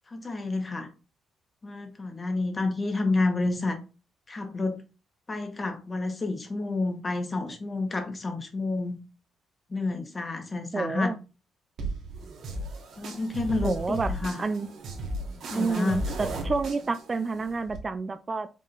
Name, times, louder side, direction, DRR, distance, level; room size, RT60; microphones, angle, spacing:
voice 1, 0.1-0.9 1.6-3.8 4.3-4.7 5.3-9.0 9.7-11.1 13.0-14.4 15.5-16.0, left 3 dB, 30° left, 1.0 m, -29 dB
voice 2, 10.7-11.2 13.6-14.1 14.4-14.7 15.5-18.5, right 4 dB, 30° right, 0.3 m, -29 dB
sound 1, 11.8-17.8, right 1 dB, 70° right, 1.3 m, -35 dB
5.2 x 3.7 x 2.5 m
cardioid pair, 90°, 0 cm